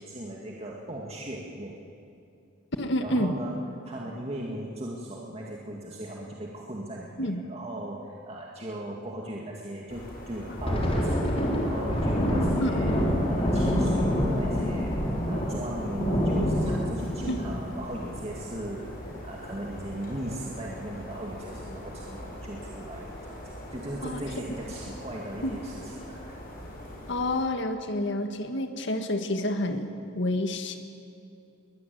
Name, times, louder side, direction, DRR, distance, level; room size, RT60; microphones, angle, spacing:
voice 1, 0.0-1.8 3.0-12.9 13.3-14.9 15.3-23.4 23.7-26.4, right 1 dB, 35° right, -2 dB, 2.2 m, -38 dB
voice 2, 2.8-3.3 7.2-7.4 12.6-12.8 17.3-17.4 24.0-24.2 25.4-25.6 27.1-29.9 30.2-30.8, left 1 dB, 65° left, 6 dB, 1.8 m, -28 dB
sound 1, 9.9-27.5, equal, 50° left, 6.5 m, -42 dB
Thunder, 10.4-19.5 19.8-20.0 20.4-20.7 21.3-21.7, equal, 30° left, 3.8 m, -27 dB
22.5 x 20.5 x 9.4 m, 2.6 s
head